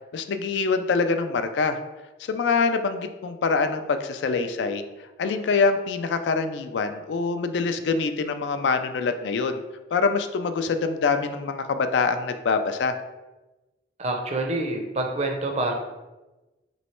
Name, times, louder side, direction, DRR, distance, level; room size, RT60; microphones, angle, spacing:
voice 1, 0.1-1.8 2.2-4.8 5.2-9.6 9.9-13.0, left 4 dB, 80° left, 8 dB, 0.4 m, -25 dB
voice 2, 14.0-15.7, right 2 dB, 40° right, 3 dB, 0.5 m, -27 dB
3.1 x 3.1 x 4.2 m, 1.1 s
head